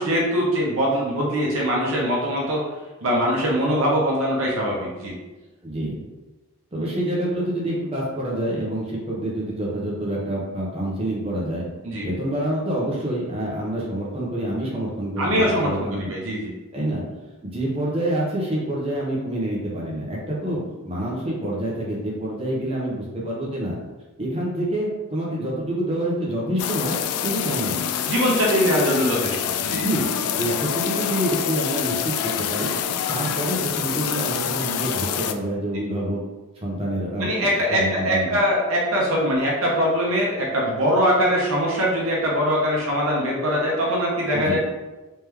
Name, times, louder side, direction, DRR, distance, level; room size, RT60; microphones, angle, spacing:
voice 1, 0.0-2.6 3.0-5.1 11.8-12.1 15.2-16.5 28.1-29.8 37.2-44.6, equal, 65° right, -3 dB, 0.8 m, -22 dB
voice 2, 5.6-6.0 6.7-11.6 12.0-15.4 15.6-16.1 16.7-17.0 17.5-23.7 24.2-27.0 27.2-27.8 29.6-32.7 33.1-36.2 36.6-38.4 44.3-44.6, right 1 dB, 25° right, -5 dB, 0.8 m, -27 dB
sound 1, 26.6-35.3, left 9 dB, 85° left, 0.3 m, -26 dB
3.2 x 3.1 x 3.5 m, 1.1 s
head